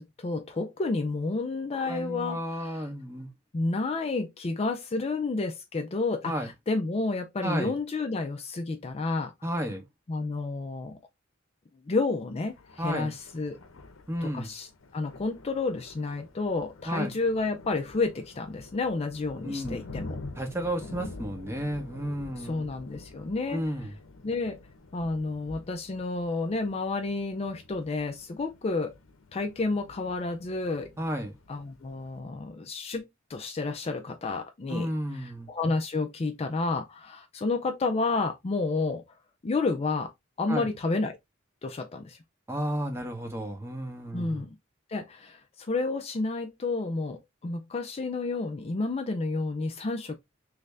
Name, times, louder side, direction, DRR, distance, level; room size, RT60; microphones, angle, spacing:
voice 1, 0.0-2.9 3.5-9.3 10.1-11.0 11.9-13.6 14.2-20.2 22.4-23.6 24.2-24.6 24.9-28.9 29.3-30.9 31.5-39.0 39.4-40.1 40.4-41.2 41.6-42.2 44.1-44.6 44.9-50.2, left 3 dB, 30° left, 0.4 m, -30 dB
voice 2, 1.9-3.3 6.2-6.5 7.4-7.7 9.4-9.8 12.8-13.1 14.1-14.5 16.9-17.1 19.4-19.8 20.4-22.7 23.5-23.9 31.0-31.3 34.7-35.5 40.5-40.7 42.5-44.4, equal, 15° right, 0.7 m, -32 dB
Thunder, 12.5-32.2, left 2 dB, 85° left, 0.7 m, -47 dB
3.2 x 2.6 x 3.2 m
head